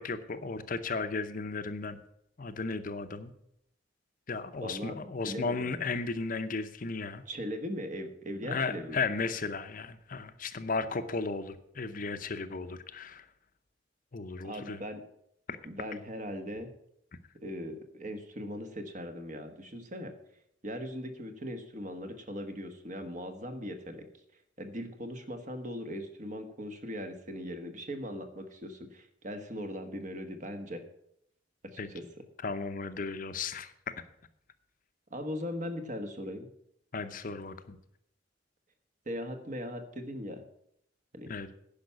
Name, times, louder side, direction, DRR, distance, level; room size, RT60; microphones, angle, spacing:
voice 1, 0.0-2.0 2.4-3.3 4.3-7.2 8.4-13.3 14.1-14.8 15.5-15.6 31.8-31.9 32.4-33.7 36.9-37.8 41.3-41.5, left 4 dB, 45° left, 10 dB, 0.7 m, -35 dB
voice 2, 4.6-5.0 5.2-5.7 7.3-9.0 14.4-15.0 15.6-16.7 17.4-20.1 20.6-24.0 24.6-30.8 31.7-31.8 35.1-36.5 39.1-40.4 41.1-41.3, equal, 40° right, 6 dB, 1.3 m, -39 dB
10.5 x 5.8 x 8.4 m, 0.75 s
head